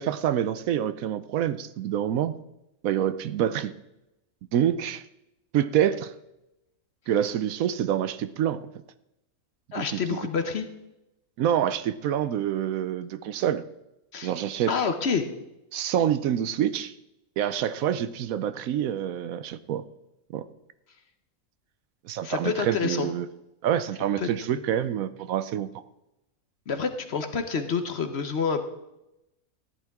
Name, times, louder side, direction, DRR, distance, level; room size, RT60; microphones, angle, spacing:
voice 1, 0.0-2.3 2.8-3.7 4.5-5.0 5.5-6.1 7.1-8.7 9.9-10.2 11.4-13.6 14.2-14.7 15.7-16.9 17.4-19.8 20.3-20.4 22.0-23.3 23.6-25.7, right 10 dB, 70° right, 13 dB, 1.0 m, -26 dB
voice 2, 9.7-10.7 14.1-14.3 14.7-15.3 22.2-23.1 24.2-24.6 26.7-28.7, left 5 dB, 50° left, 8 dB, 1.0 m, -28 dB
14.5 x 11.0 x 3.5 m, 0.90 s
omnidirectional pair, 1.6 m